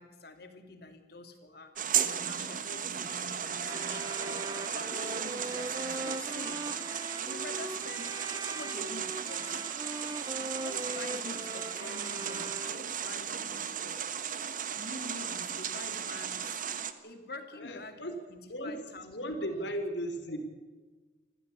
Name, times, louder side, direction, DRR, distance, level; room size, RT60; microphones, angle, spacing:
voice 1, 0.0-4.4 4.7-6.7 7.2-9.7 10.6-14.0 14.8-16.6 17.0-18.0 18.3-19.7, left 2 dB, 60° left, 6 dB, 3.0 m, -46 dB
sound 1, 1.8-16.9, right 8 dB, 45° right, 1.4 m, -35 dB
sound 2, 3.6-13.1, right 2 dB, 20° right, 0.6 m, -41 dB
voice 2, 17.5-18.1 18.5-18.8 19.1-20.4, equal, 75° left, 6 dB, 4.0 m, -36 dB
26.5 x 15.0 x 8.6 m, 1.3 s
head